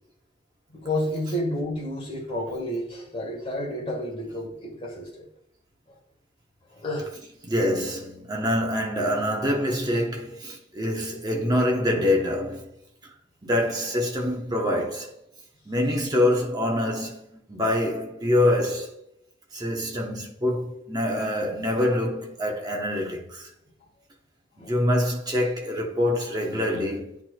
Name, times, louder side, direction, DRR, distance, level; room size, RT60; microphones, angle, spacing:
voice 1, 0.7-5.3 6.7-7.1 24.6-24.7, left 1 dB, 30° left, 1.8 m, -30 dB
voice 2, 7.4-12.7 13.0-13.1 13.4-15.1 15.7-18.9 19.5-23.5 24.6-27.1, left 1 dB, 25° right, 1.2 m, -25 dB
9.8 x 4.6 x 2.4 m
head